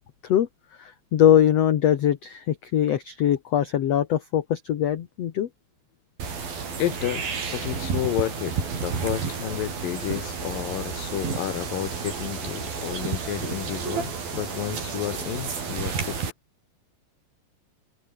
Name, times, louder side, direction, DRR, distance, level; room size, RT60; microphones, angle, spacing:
voice 1, 0.8-5.5, left 10 dB, 55° left, 2.0 m, -22 dB
sound 1, 6.2-16.3, right 5 dB, 80° right, 7.0 m, -31 dB
voice 2, 6.8-16.2, left 13 dB, 75° left, 2.9 m, -31 dB
omnidirectional pair, 4.2 m